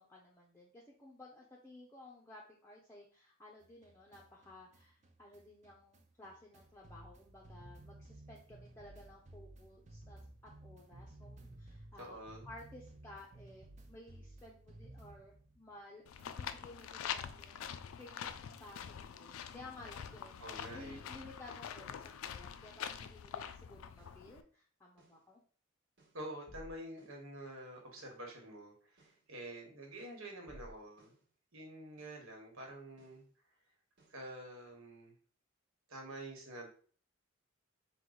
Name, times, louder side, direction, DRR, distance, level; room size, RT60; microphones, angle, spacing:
voice 1, 0.0-25.4, left 2 dB, 10° left, -4 dB, 0.5 m, -55 dB
sound 1, 3.6-15.9 16.2-19.0, right 1 dB, 35° right, 0.4 m, -57 dB
voice 2, 12.0-12.5 20.4-21.1 26.1-31.1 31.5-33.2 34.1-35.1 35.9-36.7, right 1 dB, 85° right, 1 dB, 1.3 m, -48 dB
sound 2, 16.1-24.4, left 8 dB, 80° left, 0.3 m, -45 dB
sound 3, 23.0-23.3 24.0-24.3 25.0-25.3 26.0-27.3 28.0-28.3 29.0-29.3 30.0-31.3 32.0-32.3 33.0-33.3 34.0-34.3, right 1 dB, 55° right, 1.2 m, -60 dB
4.6 x 2.2 x 3.8 m, 0.44 s
head